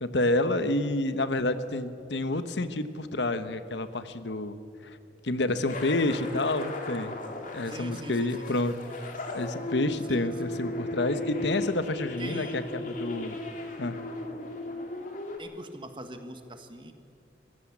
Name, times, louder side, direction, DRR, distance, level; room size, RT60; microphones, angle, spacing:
voice 1, 0.0-4.5 4.8-5.0 5.2-7.2 7.5-8.8 9.3-13.4 13.8-14.0, left 2 dB, 85° left, 11 dB, 1.1 m, -29 dB
sound 1, 5.7-15.4, left 2 dB, 50° left, 2.4 m, -36 dB
voice 2, 7.6-8.7 10.1-10.5 12.2-12.6 15.4-16.9, right 1 dB, 30° right, 7 dB, 1.5 m, -42 dB
25.5 x 15.0 x 7.3 m, 2.5 s
head